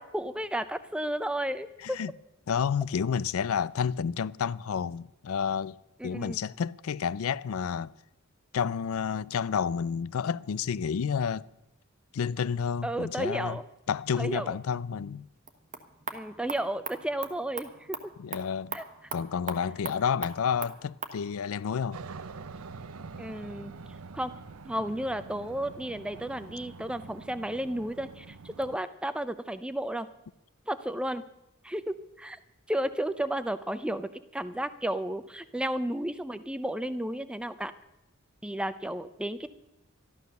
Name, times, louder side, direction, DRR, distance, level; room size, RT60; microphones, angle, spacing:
voice 1, 0.0-2.0 6.0-6.4 12.8-13.6 14.2-14.6 16.1-18.1 18.7-18.8 23.2-23.7 24.1-24.3 24.6-30.1 30.7-31.2 31.6-32.4 32.7-37.7 38.4-39.5, right 1 dB, 5° right, 0.5 m, -33 dB
voice 2, 2.5-5.8 6.0-7.9 8.5-11.5 12.1-13.6 13.9-15.3 18.2-18.8 19.1-22.0, left 7 dB, 75° left, 0.4 m, -30 dB
sound 1, 15.4-21.2, right 5 dB, 35° right, 1.1 m, -41 dB
Aircraft, 21.9-28.8, right 4 dB, 80° right, 0.7 m, -45 dB
13.0 x 11.5 x 6.6 m
head